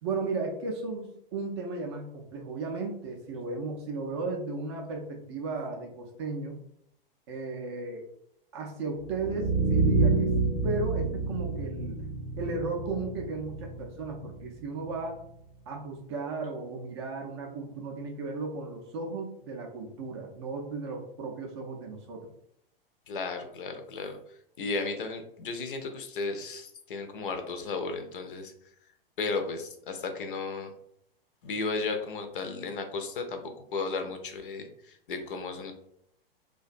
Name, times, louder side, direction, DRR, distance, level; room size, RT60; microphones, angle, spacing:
voice 1, 0.0-6.6 7.3-8.1 8.5-12.0 12.4-15.2 15.7-22.3, right 3 dB, 30° right, 1 dB, 0.4 m, -35 dB
sound 1, 9.0-15.0, right 3 dB, 85° right, 0.6 m, -29 dB
voice 2, 23.1-24.2 24.6-28.5 29.2-30.7 31.4-33.4 33.7-35.7, left 4 dB, 60° left, 5 dB, 0.5 m, -34 dB
2.4 x 2.2 x 2.4 m, 0.74 s
figure-of-eight pair, 100°, 29 cm